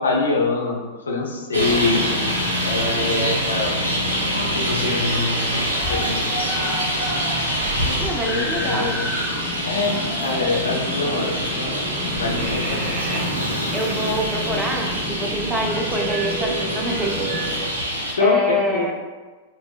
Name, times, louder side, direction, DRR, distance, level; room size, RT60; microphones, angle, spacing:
voice 1, 0.0-2.2 2.7-3.8 4.5-6.8 7.7-9.1 9.7-11.8 12.2-13.3 18.1-18.9, left 3 dB, 75° left, -1 dB, 0.5 m, -25 dB
Traffic noise roadway noise, 1.5-18.1, equal, 75° right, 0.5 m, -25 dB
Screaming, 5.7-12.5 13.4-13.5, left 1 dB, 5° left, 0.9 m, -33 dB
voice 2, 8.0-9.0 13.7-17.3 17.6-18.9, equal, 10° right, 0 dB, 0.4 m, -26 dB
sound 1, 8.3-17.6, equal, 35° right, 0.8 m, -31 dB
3.8 x 2.0 x 2.3 m, 1.3 s
figure-of-eight pair, 100°, 0 cm